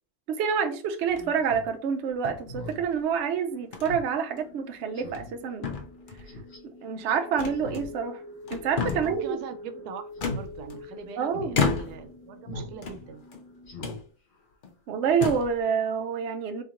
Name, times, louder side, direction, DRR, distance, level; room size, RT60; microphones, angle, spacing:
voice 1, 0.3-5.7 6.8-8.2 8.5-9.4 11.2-11.6 14.9-16.6, right 6 dB, 60° right, 0.7 m, -27 dB
sound 1, 1.0-1.4 2.2-3.0 3.7-4.0 4.4-4.5 5.0-5.4 5.6-6.3 7.4-8.1 8.4-9.2 10.2-11.0 11.5-12.2 12.7-13.4 13.8-14.0 14.6-14.7 15.1-15.6, left 5 dB, 85° left, 0.4 m, -32 dB
Speech synthesizer, 1.4-1.7 2.0-2.1 2.5-2.8 3.2-3.3 3.9-4.1 4.4-4.5 4.9-5.3 6.3-6.6 7.5-7.9 8.2-8.3 8.8-9.2 9.5-9.7 10.2-10.4 10.8-10.9 11.3-11.5 12.5-12.7 13.1-13.2 13.6-14.0 14.3-14.4, left 1 dB, 45° left, 1.4 m, -39 dB
sound 2, 2.1-13.9, left 2 dB, 10° left, 0.7 m, -47 dB
voice 2, 8.9-13.2, right 7 dB, 90° right, 1.1 m, -42 dB
3.7 x 2.9 x 2.9 m
omnidirectional pair, 1.6 m